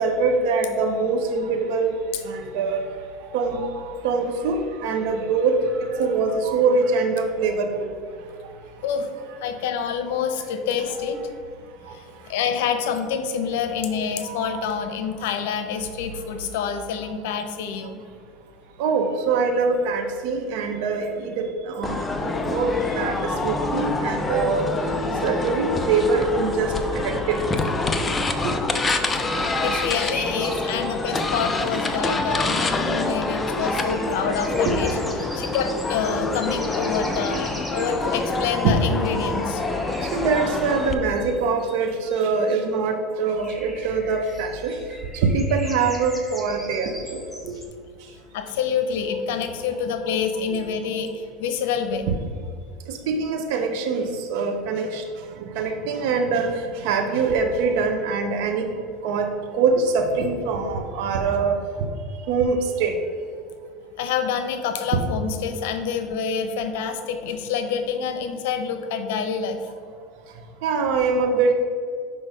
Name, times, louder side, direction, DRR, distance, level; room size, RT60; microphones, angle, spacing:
voice 1, 0.0-2.0 2.2-2.8 3.3-8.0 11.0-11.1 11.9-12.0 14.2-14.6 18.8-24.7 25.2-27.5 28.4-28.5 33.5-34.0 34.7-34.8 37.7-38.1 38.6-38.7 40.1-44.8 45.1-47.5 50.5-50.6 52.1-52.2 52.9-55.0 55.4-58.7 59.0-61.9 62.3-63.0 64.9-65.0 70.6-71.5, right 4 dB, 70° right, 4 dB, 0.8 m, -24 dB
voice 2, 9.4-11.2 11.9-18.0 29.3-39.6 48.3-52.1 64.0-69.7, left 6 dB, 80° left, 7 dB, 0.9 m, -27 dB
sound 1, 21.8-40.9, left 2 dB, 15° left, 0.6 m, -26 dB
sound 2, 28.3-28.4 29.3-32.7 33.6-42.6 43.2-47.7, equal, ahead, 1.0 m, -40 dB
6.4 x 5.4 x 5.0 m, 2.2 s
supercardioid pair, 135°, 0 cm